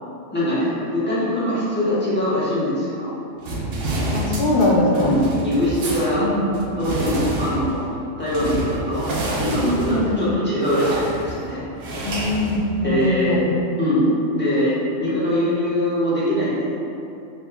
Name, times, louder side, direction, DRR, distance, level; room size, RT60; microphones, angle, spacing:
voice 1, 0.3-3.1 4.9-6.3 6.6-7.9 8.2-9.1 9.4-11.7 12.8-13.5 13.8-16.7, equal, 10° left, -11 dB, 0.9 m, -22 dB
sound 1, 3.4-13.2, right 1 dB, 60° right, 0.7 m, -28 dB
voice 2, 4.1-5.2 6.2-6.5 9.9-10.3 12.0-13.5, left 1 dB, 55° left, -3 dB, 0.7 m, -21 dB
5.2 x 3.1 x 2.2 m, 2.8 s
omnidirectional pair, 1.3 m